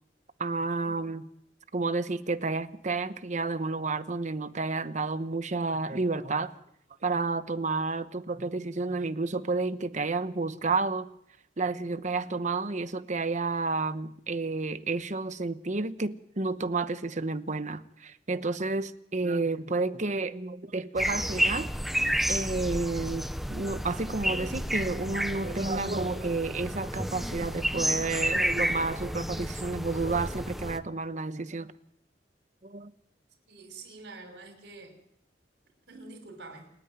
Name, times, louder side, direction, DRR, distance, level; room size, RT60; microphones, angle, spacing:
voice 1, 0.4-1.3 1.7-6.5 7.0-11.1 11.6-21.7 22.3-31.7 32.6-32.9, right 3 dB, 45° right, 1.0 m, -31 dB
sound 1, 21.0-30.8, equal, ahead, 0.8 m, -31 dB
voice 2, 33.5-35.0 35.9-36.7, right 3 dB, 75° right, 5.8 m, -46 dB
29.0 x 9.6 x 9.5 m
head